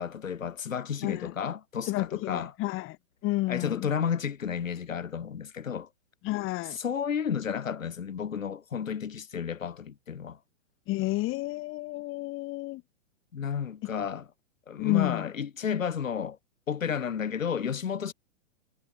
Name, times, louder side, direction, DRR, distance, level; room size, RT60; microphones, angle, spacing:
voice 1, 0.0-2.5 3.5-5.9 6.7-10.4 13.3-14.3 14.7-16.4 16.7-18.1, left 7 dB, 80° left, 6.0 m, -32 dB
voice 2, 1.0-1.3 1.9-3.0 3.2-3.9 6.2-6.8 10.9-12.8 14.8-15.3, left 19 dB, 30° left, 4.4 m, -30 dB
hypercardioid pair, 125°, 39 cm